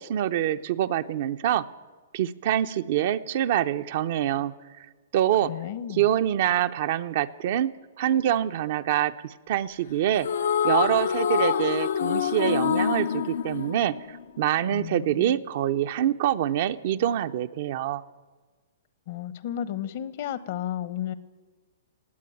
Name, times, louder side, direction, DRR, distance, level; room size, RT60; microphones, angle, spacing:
voice 1, 0.0-1.6 2.1-4.5 5.1-5.5 5.9-7.7 8.0-10.3 10.6-14.0 14.4-18.0, right 11 dB, 55° right, 11 dB, 0.7 m, -25 dB
voice 2, 5.5-6.1 14.7-15.4 19.1-21.1, left 11 dB, 55° left, 17 dB, 0.9 m, -33 dB
sound 1, 10.2-14.6, left 8 dB, 75° left, 0.6 m, -26 dB
18.0 x 8.4 x 9.2 m, 1.4 s
hypercardioid pair, 130°, 0 cm